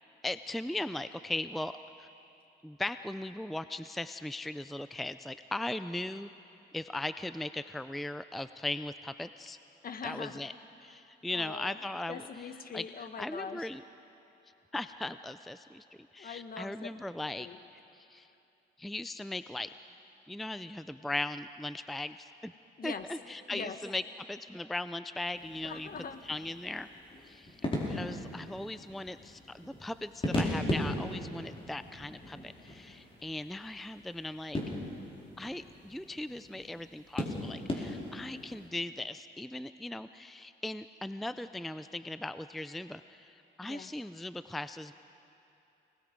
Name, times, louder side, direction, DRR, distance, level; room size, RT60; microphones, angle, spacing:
voice 1, 0.2-1.7 2.0-2.1 2.6-6.3 6.7-9.6 10.0-10.5 10.8-12.2 12.7-12.8 13.2-13.8 14.7-15.8 16.1-17.5 18.1-18.3 18.8-19.7 20.3-22.5 22.8-24.0 24.3-25.9 26.2-26.9 27.2-34.6 35.4-44.9, left 2 dB, ahead, 12 dB, 0.4 m, -38 dB
voice 2, 9.8-10.5 11.3-11.8 12.1-13.7 16.2-16.9 17.4-17.6 22.8-23.1 23.5-23.8 25.6-26.2 43.6-43.9, left 5 dB, 45° left, 8 dB, 1.4 m, -42 dB
sound 1, 25.3-38.7, left 1 dB, 30° left, 4.9 m, -38 dB
29.5 x 20.0 x 5.3 m, 2.8 s
cardioid pair, 90°, 20 cm